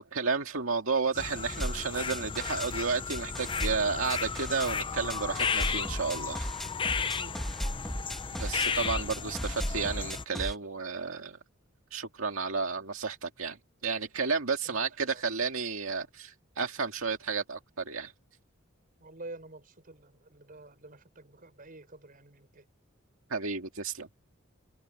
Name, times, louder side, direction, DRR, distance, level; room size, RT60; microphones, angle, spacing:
voice 1, 0.0-6.5 8.3-11.4 11.9-13.6 13.8-18.1 23.3-24.1, right 5 dB, 80° right, 2.1 m, -32 dB
sound 1, 1.1-10.2, left 5 dB, 25° left, 0.6 m, -34 dB
sound 2, 1.5-2.7 3.1-4.7 5.1-10.5, equal, ahead, 2.4 m, -36 dB
voice 2, 7.0-7.9 14.6-14.9 15.1-15.2 19.0-22.6, right 2 dB, 45° right, 5.5 m, -49 dB
open air
head